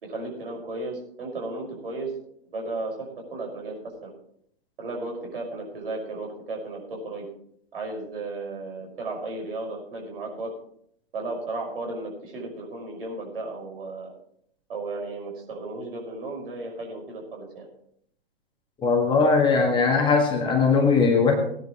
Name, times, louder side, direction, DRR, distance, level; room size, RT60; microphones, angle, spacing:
voice 1, 0.0-2.1 2.5-3.7 4.0-4.1 4.8-7.2 7.7-10.5 11.1-14.1 14.7-17.7, right 2 dB, 65° right, 0 dB, 5.8 m, -34 dB
voice 2, 18.8-21.4, left 4 dB, 15° left, 2 dB, 1.8 m, -20 dB
18.5 x 10.5 x 3.2 m, 0.68 s
figure-of-eight pair, 120°, 31 cm